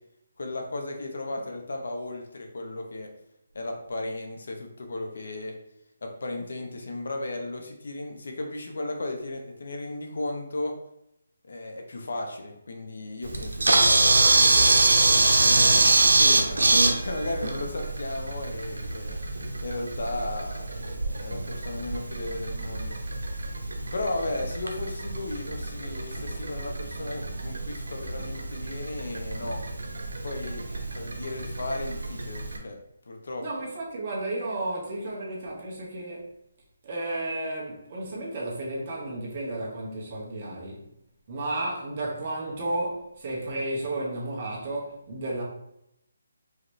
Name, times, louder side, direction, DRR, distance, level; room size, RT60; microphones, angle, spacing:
voice 1, 0.4-3.1 3.5-5.5 6.0-10.7 11.4-15.1 15.4-15.8 16.1-23.2 23.9-29.6 30.2-32.8 33.1-33.4, left 2 dB, 70° left, 0.9 m, -35 dB
Camera, 13.2-32.6, right 2 dB, 90° right, 0.8 m, -25 dB
voice 2, 33.4-36.3 36.8-40.9 41.3-45.4, right 2 dB, 35° right, 1.2 m, -32 dB
4.9 x 3.0 x 3.2 m
hypercardioid pair, 165°, 0 cm